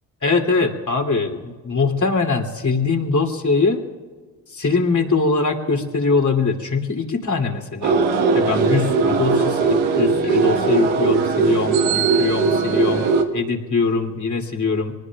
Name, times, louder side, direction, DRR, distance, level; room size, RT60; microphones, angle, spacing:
voice 1, 0.2-3.8 4.5-8.0 8.3-13.1 13.3-14.9, left 4 dB, 40° left, 3 dB, 2.9 m, -22 dB
sound 1, 7.8-13.2, right 4 dB, 85° right, 1.6 m, -19 dB
24.5 x 20.0 x 2.4 m, 1.5 s
supercardioid pair, 50°, 44 cm